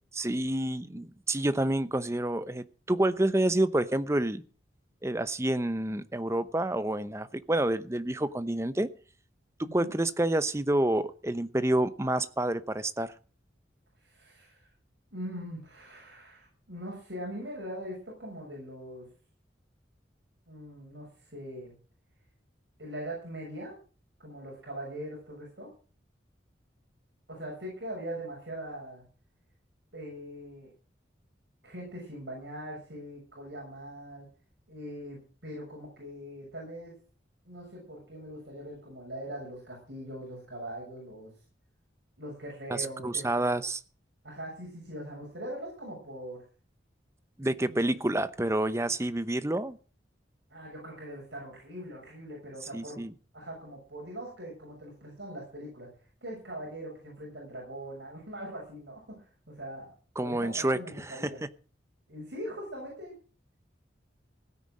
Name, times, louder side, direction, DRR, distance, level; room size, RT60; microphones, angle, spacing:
voice 1, 0.2-4.4 5.0-8.9 9.6-13.1 42.7-43.8 47.4-49.8 52.7-53.1 60.2-61.3, right 1 dB, 15° right, 13 dB, 0.8 m, -28 dB
voice 2, 9.6-10.0 14.0-14.6 15.1-19.1 20.5-21.1 21.3-21.7 22.8-23.8 24.2-25.7 27.3-29.0 29.9-30.7 31.6-34.3 34.7-36.9 37.5-41.3 42.2-43.5 44.2-46.4 47.6-48.0 50.5-53.1 53.3-55.9 56.2-59.9 60.2-61.4 62.1-63.1, right 1 dB, 70° right, -2 dB, 6.8 m, -41 dB
16.5 x 9.5 x 6.4 m, 0.39 s
head